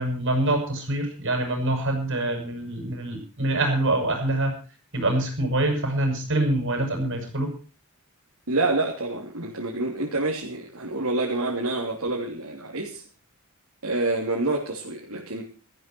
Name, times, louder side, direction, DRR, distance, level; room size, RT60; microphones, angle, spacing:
voice 1, 0.0-4.5 4.9-7.5, right 1 dB, 60° right, 4 dB, 7.4 m, -25 dB
voice 2, 8.5-13.0 13.8-15.4, right 2 dB, 85° right, -1 dB, 3.3 m, -27 dB
17.5 x 14.0 x 4.6 m, 0.37 s
head